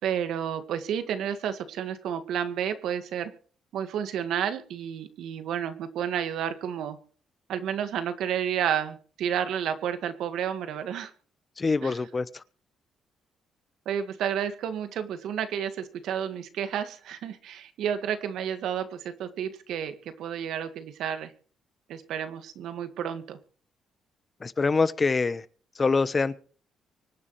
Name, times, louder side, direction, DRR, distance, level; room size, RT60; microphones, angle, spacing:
voice 1, 0.0-3.3 3.7-7.0 7.5-11.1 11.8-11.9 13.8-21.3 21.9-23.4, right 9 dB, 80° right, 1.8 m, -31 dB
voice 2, 11.6-12.4 24.4-25.4 25.8-26.4, left 4 dB, 30° left, 1.0 m, -25 dB
25.0 x 9.7 x 3.2 m
cardioid pair, 90°, 0 cm